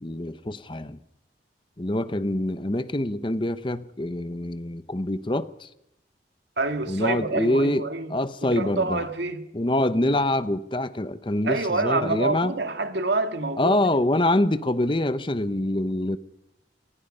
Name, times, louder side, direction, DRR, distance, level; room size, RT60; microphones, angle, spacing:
voice 1, 0.0-1.0 1.8-5.7 6.9-7.8 8.1-9.0 9.5-12.5 13.6-16.2, left 1 dB, 25° left, 0.8 m, -25 dB
voice 2, 6.6-8.1 8.4-9.4 11.4-13.8, right 3 dB, 70° right, 2.2 m, -27 dB
27.5 x 20.0 x 5.5 m
head